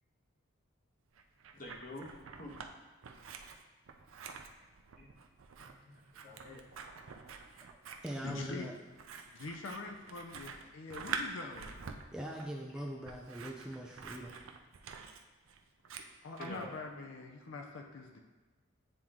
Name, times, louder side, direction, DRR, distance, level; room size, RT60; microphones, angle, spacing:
Scissors, 1.2-2.7 3.0-16.7, right 5 dB, 85° right, 0.5 m, -47 dB
voice 1, 1.5-2.1 2.4-2.5 5.0-5.1 5.6-6.6 16.4-16.7, left 1 dB, 40° left, -2 dB, 1.1 m, -48 dB
voice 2, 7.4-7.8 8.0-8.7 12.1-14.3, equal, 5° right, -1 dB, 0.4 m, -42 dB
voice 3, 8.2-8.7 9.3-11.7 16.2-18.2, left 3 dB, 70° left, 3 dB, 0.5 m, -44 dB
8.7 x 3.0 x 3.6 m, 1.3 s
head